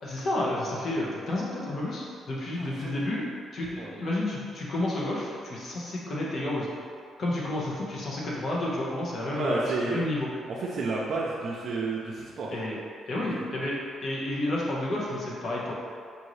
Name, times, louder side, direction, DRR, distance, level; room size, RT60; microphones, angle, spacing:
voice 1, 0.0-3.3 3.5-6.7 7.2-10.3 12.5-12.8 13.1-15.7, left 1 dB, 50° left, -5 dB, 1.0 m, -30 dB
voice 2, 2.6-3.0 3.8-4.0 9.3-10.0 10.5-12.5 13.1-13.4, right 3 dB, 60° right, -4 dB, 0.5 m, -31 dB
5.4 x 2.7 x 3.1 m, 2.2 s
cardioid pair, 90°, 0 cm